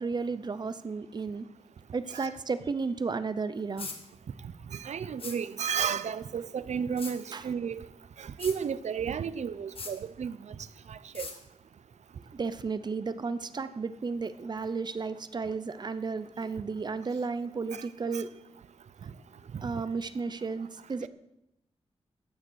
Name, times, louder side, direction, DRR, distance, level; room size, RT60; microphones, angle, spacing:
voice 1, 0.0-1.5 1.9-3.9 7.3-7.4 12.3-18.4 19.6-21.1, right 4 dB, 40° right, 0.6 m, -33 dB
sound 1, 3.8-4.0 5.2-5.4 7.0-7.2 8.4-8.6 9.8-9.9 11.1-11.4, left 4 dB, 55° left, 1.7 m, -39 dB
voice 2, 4.7-7.8 8.2-10.5 10.9-11.3 18.1-18.2, right 7 dB, 85° right, 0.6 m, -33 dB
14.5 x 9.5 x 6.3 m
wide cardioid pair, 175°, 11 cm